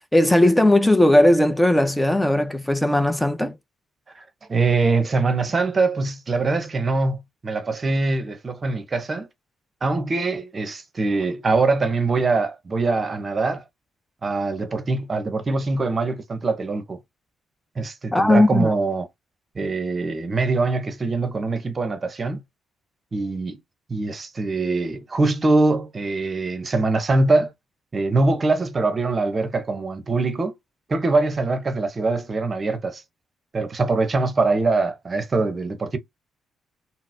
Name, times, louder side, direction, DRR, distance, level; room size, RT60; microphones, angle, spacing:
voice 1, 0.1-3.6 18.1-18.7, left 1 dB, 5° left, 0.7 m, -17 dB
voice 2, 4.5-9.3 9.8-13.6 14.2-17.0 17.8-19.1 19.6-22.4 23.1-23.6 23.9-27.5 27.9-30.5 30.9-33.0 33.5-36.0, right 3 dB, 40° right, 0.7 m, -23 dB
3.9 x 2.0 x 2.6 m
hypercardioid pair, 50°, 0 cm